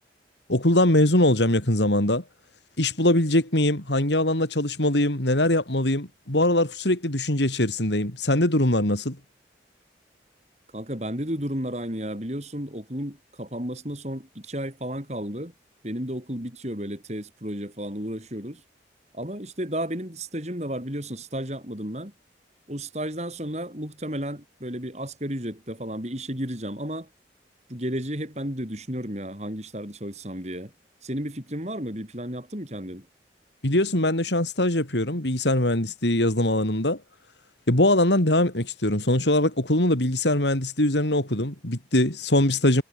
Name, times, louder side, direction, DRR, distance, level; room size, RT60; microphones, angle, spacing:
voice 1, 0.5-2.2 2.8-9.2 33.6-37.0 37.7-42.8, left 1 dB, 80° left, 4.2 m, -22 dB
voice 2, 10.7-15.5 15.8-18.6 19.1-22.1 22.7-27.1 27.7-30.7 31.0-33.1, right 1 dB, 40° right, 5.4 m, -33 dB
head